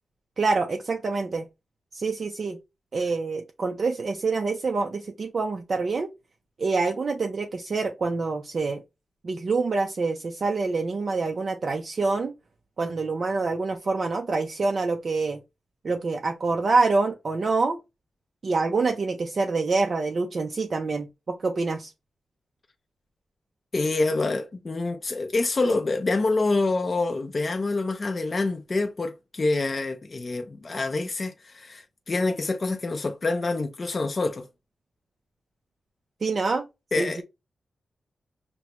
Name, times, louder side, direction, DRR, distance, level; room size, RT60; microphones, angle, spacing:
voice 1, 0.4-1.5 1.9-2.6 2.9-6.1 6.6-8.8 9.2-12.3 12.8-15.4 15.8-17.8 18.4-21.9 36.2-36.7 37.0-37.2, right 3 dB, 40° right, 0.4 m, -26 dB
voice 2, 23.7-34.5 36.9-37.2, left 3 dB, 30° left, 0.4 m, -26 dB
5.9 x 2.1 x 2.8 m
wide cardioid pair, 175°, 0 cm